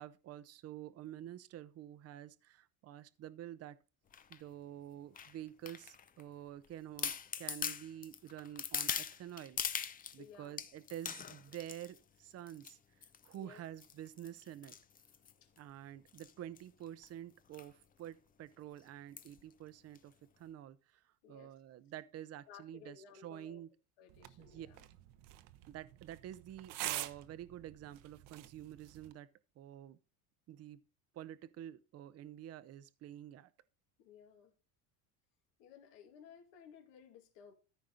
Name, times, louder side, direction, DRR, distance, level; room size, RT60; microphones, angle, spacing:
voice 1, 0.0-3.8 4.3-9.6 10.1-12.8 13.2-14.7 15.6-23.7 24.4-24.7 25.7-29.3 29.6-30.0 30.5-30.8 31.1-33.5, right 12 dB, 35° right, 0.7 m, -49 dB
sound 1, 4.1-4.4 5.1-6.2 6.6-6.7 7.0-10.2 10.6-12.0 12.5-12.7 13.0-13.4 13.8-15.6 16.1-16.3 16.6-16.7 16.9-17.1 17.5-17.7 18.0-18.1 19.2-19.4 19.9-20.0, left 7 dB, 20° left, 0.5 m, -41 dB
voice 2, 10.2-10.6 13.4-13.6 15.4-15.5 21.2-21.5 22.5-23.6 24.0-24.9 34.0-34.5 35.6-37.5, left 7 dB, 70° left, 2.5 m, -57 dB
sound 2, 24.1-29.1, right 15 dB, 75° right, 0.9 m, -46 dB
14.0 x 4.7 x 3.9 m
cardioid pair, 135°, 44 cm